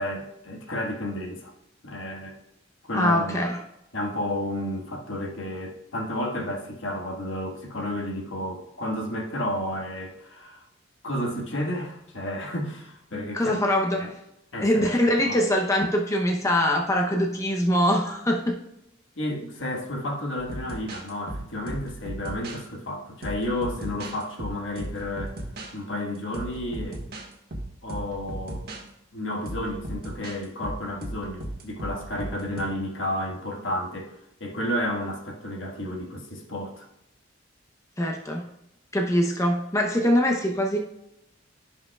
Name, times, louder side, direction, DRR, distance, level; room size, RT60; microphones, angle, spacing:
voice 1, 0.0-1.5 1.8-2.3 2.9-3.4 3.9-10.6 11.0-13.6 14.0-14.1 14.5-14.9 15.2-15.4 19.2-25.4 25.7-27.0 27.8-28.7 29.1-34.1 34.4-36.9, left 1 dB, 75° left, 0 dB, 1.6 m, -31 dB
voice 2, 2.9-3.6 13.3-14.1 14.6-18.6 38.0-38.4 38.9-40.8, equal, 15° left, 1 dB, 0.7 m, -23 dB
sound 1, 20.4-22.6 23.2-25.7 26.3-27.3 27.5-28.8 29.5-32.6, right 1 dB, 50° right, 1.5 m, -36 dB
16.0 x 5.5 x 2.3 m, 0.86 s
head